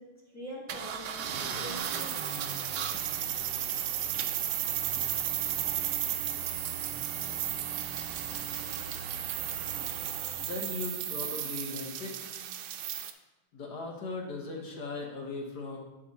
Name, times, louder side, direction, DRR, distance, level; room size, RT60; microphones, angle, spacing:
voice 1, 0.0-2.4, equal, 10° left, -5 dB, 1.4 m, -45 dB
sound 1, 0.7-10.8, right 6 dB, 65° right, 1.1 m, -40 dB
sound 2, 1.8-13.1, right 11 dB, 85° right, 1.5 m, -34 dB
voice 2, 10.4-12.3 13.5-15.8, left 3 dB, 55° left, 0 dB, 1.7 m, -38 dB
9.2 x 5.3 x 4.1 m, 1.0 s
omnidirectional pair, 2.3 m